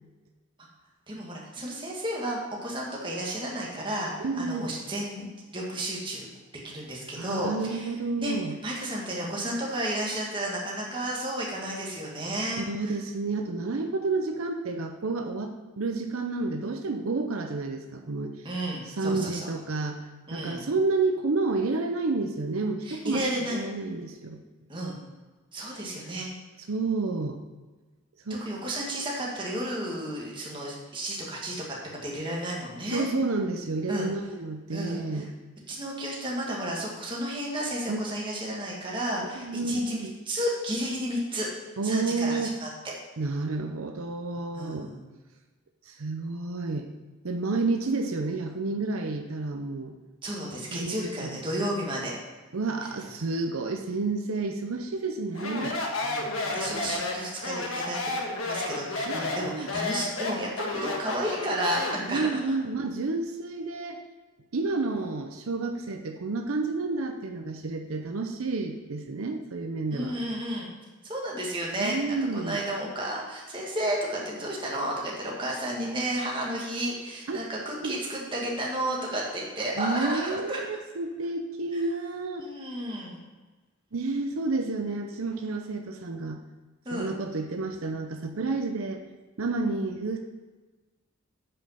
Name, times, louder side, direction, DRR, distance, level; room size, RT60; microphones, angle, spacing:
voice 1, 1.1-4.1 4.4-6.3 6.6-7.9 8.2-8.3 8.6-12.9 18.4-19.5 20.3-20.7 22.8-23.6 24.7-25.0 25.5-26.3 28.3-33.1 33.9-34.1 34.7-35.3 35.7-40.0 40.3-41.5 41.8-42.7 44.5-45.0 50.2-52.1 56.0-56.3 56.5-58.1 58.4-62.4 69.9-70.7 71.0-72.0 72.3-80.6 81.7-81.8 82.4-83.2 86.9-87.1, right 1 dB, 25° right, -3 dB, 1.9 m, -32 dB
voice 2, 4.2-4.7 7.2-8.6 12.7-18.5 18.8-20.0 20.3-24.4 26.7-27.4 28.3-28.4 29.2-29.3 32.9-35.3 37.9-38.0 39.2-40.1 41.8-42.6 43.2-44.9 45.9-46.9 47.2-49.9 50.7-51.4 52.5-55.8 59.1-59.7 62.1-64.0 64.5-70.1 71.8-72.6 77.3-77.5 77.8-77.9 79.8-82.4 83.9-86.4 86.9-89.0 89.4-90.2, right 3 dB, 80° right, 5 dB, 0.7 m, -30 dB
Speech, 55.3-62.1, left 2 dB, 75° left, 1.4 m, -31 dB
8.9 x 5.2 x 5.8 m, 1.3 s
head